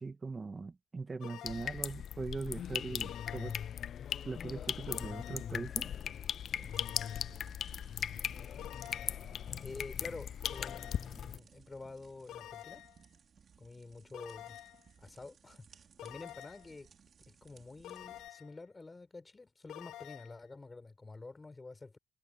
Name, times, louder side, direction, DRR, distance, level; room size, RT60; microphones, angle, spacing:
voice 1, 0.0-3.6 4.2-5.9, right 4 dB, 25° right, 2.0 m, -41 dB
sound 1, 1.2-1.9 3.0-3.8 4.9-5.6 6.7-7.5 8.6-9.3 10.4-11.2 12.3-13.0 14.1-14.9 16.0-16.7 17.8-18.6 19.7-20.4, left 13 dB, 90° left, 3.1 m, -49 dB
sound 2, 1.5-11.4, left 9 dB, 60° left, 0.3 m, -39 dB
sound 3, 6.4-18.3, right 7 dB, 50° right, 4.0 m, -61 dB
voice 2, 9.6-12.9 13.6-14.6 15.0-16.9 17.3-22.0, left 3 dB, 20° left, 6.2 m, -49 dB
cardioid pair, 100°, 0 cm